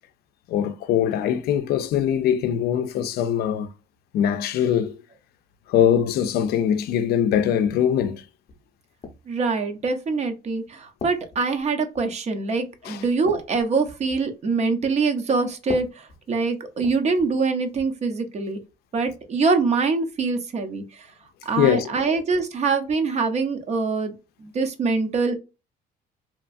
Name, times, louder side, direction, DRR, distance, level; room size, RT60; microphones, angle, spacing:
voice 1, 0.5-3.7 4.1-5.0 5.7-8.2 12.8-13.0 21.6-21.9, left 9 dB, 70° left, 0.4 m, -22 dB
sound 1, 7.3-7.8 8.5-9.3 10.0-10.3 11.0-12.2 12.5-12.7 13.0-14.3 15.6-17.4 17.7-18.0 19.0-19.2, left 4 dB, 40° left, 0.7 m, -40 dB
voice 2, 9.3-18.6 18.9-21.1 21.5-24.1 24.4-25.4, right 4 dB, 40° right, 0.7 m, -24 dB
2.9 x 2.3 x 2.4 m
cardioid pair, 110°, 17 cm